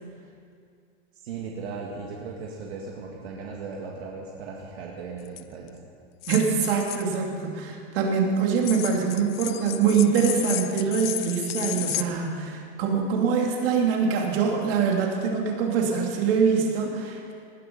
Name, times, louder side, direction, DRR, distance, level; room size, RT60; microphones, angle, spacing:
voice 1, 1.2-5.8, right 4 dB, 80° right, -2 dB, 2.1 m, -37 dB
sound 1, 5.3-5.4 6.2-7.2 8.6-12.0, left 17 dB, 70° left, 0.7 m, -33 dB
voice 2, 6.3-17.3, right 6 dB, 60° right, 0 dB, 3.0 m, -24 dB
19.5 x 11.0 x 5.5 m, 2.3 s
supercardioid pair, 150°, 31 cm